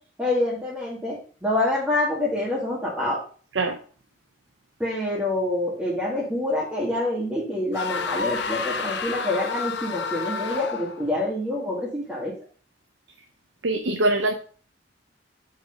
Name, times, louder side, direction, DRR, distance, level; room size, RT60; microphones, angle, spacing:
voice 1, 0.2-3.2 4.8-12.3, left 1 dB, 10° right, -6 dB, 1.9 m, -26 dB
sound 1, 7.7-11.1, left 5 dB, 65° left, 0.9 m, -30 dB
voice 2, 13.6-14.3, right 2 dB, 85° right, 5 dB, 0.8 m, -22 dB
7.7 x 4.8 x 5.0 m, 0.41 s
head